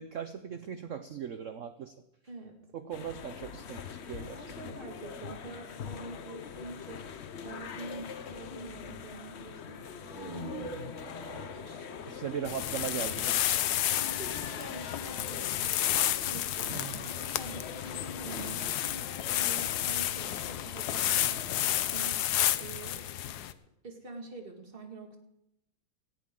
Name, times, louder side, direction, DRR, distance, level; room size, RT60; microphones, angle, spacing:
voice 1, 0.0-1.9 2.7-4.7 12.1-13.5 16.7-17.1, right 8 dB, 70° right, 10 dB, 0.7 m, -39 dB
voice 2, 2.3-2.6 4.2-7.1 7.4-10.6 11.5-12.4 14.0-23.1 23.8-25.2, right 2 dB, 30° right, 3 dB, 2.1 m, -46 dB
sound 1, 2.9-22.1, left 7 dB, 85° left, 0.5 m, -44 dB
sound 2, 10.0-13.6, equal, 25° left, 1.6 m, -43 dB
sound 3, 12.5-23.5, left 12 dB, 70° left, 1.0 m, -31 dB
18.5 x 15.0 x 3.8 m, 0.84 s
omnidirectional pair, 2.2 m